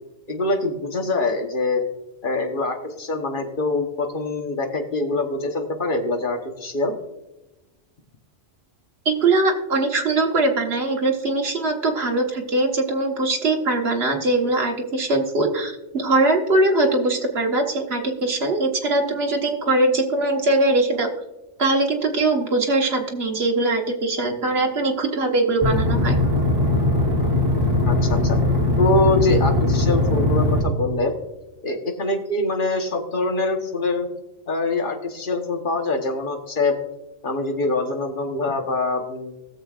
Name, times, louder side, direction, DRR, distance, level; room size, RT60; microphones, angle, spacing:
voice 1, 0.3-1.8 2.2-6.9 27.9-28.4 28.8-31.1 31.6-34.1 34.5-36.8 37.2-39.3, left 2 dB, 45° left, 3 dB, 1.3 m, -24 dB
voice 2, 9.0-21.1 21.6-26.2, right 2 dB, 60° right, 1 dB, 1.6 m, -21 dB
sound 1, 25.6-30.6, left 2 dB, 20° right, 2.8 m, -20 dB
21.0 x 7.2 x 2.4 m, 1.0 s
omnidirectional pair, 1.2 m